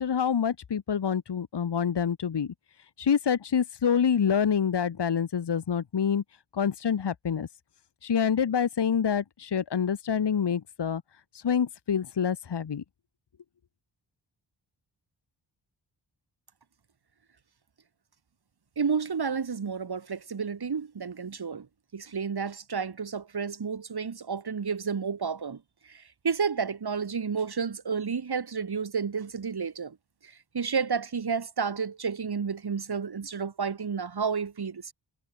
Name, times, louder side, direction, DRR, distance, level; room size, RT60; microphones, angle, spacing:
voice 1, 0.0-2.5 3.0-6.2 6.5-7.5 8.0-11.0 11.3-12.8, left 7 dB, 60° left, 1.4 m, -26 dB
voice 2, 18.8-21.7 21.9-25.6 25.9-30.0 30.2-34.9, right 6 dB, 50° right, 2.1 m, -31 dB
cardioid pair, 55°, 47 cm